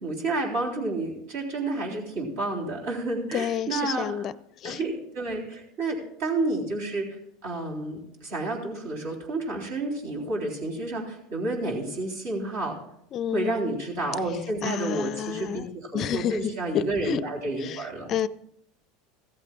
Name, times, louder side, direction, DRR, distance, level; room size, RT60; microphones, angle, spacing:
voice 1, 0.0-4.1 4.6-7.1 7.4-12.8 13.3-18.1, right 2 dB, 70° right, 3.6 m, -30 dB
voice 2, 3.3-4.3 4.6-4.8 13.1-13.8 14.6-15.7 15.9-17.2 17.6-18.3, left 9 dB, 45° left, 0.4 m, -30 dB
15.0 x 14.5 x 2.4 m
hypercardioid pair, 85°, 0 cm